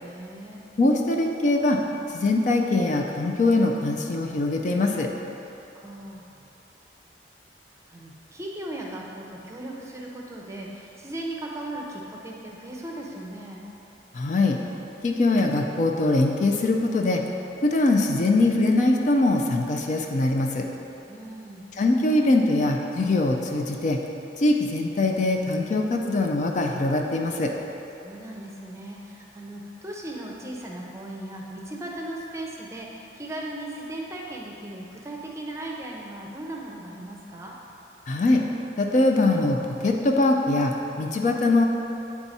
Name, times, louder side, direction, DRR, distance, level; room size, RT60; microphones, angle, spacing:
voice 1, 0.0-0.6 5.7-6.3 7.9-13.6 21.1-21.7 28.0-37.5, right 1 dB, 15° right, -2 dB, 0.6 m, -37 dB
voice 2, 0.8-1.8 2.1-5.1 14.1-14.6 15.0-17.2 17.6-20.7 21.8-24.0 24.4-27.5 38.1-38.4 38.8-41.7, left 2 dB, 45° left, 2 dB, 0.4 m, -22 dB
8.4 x 3.5 x 4.1 m, 3.0 s
head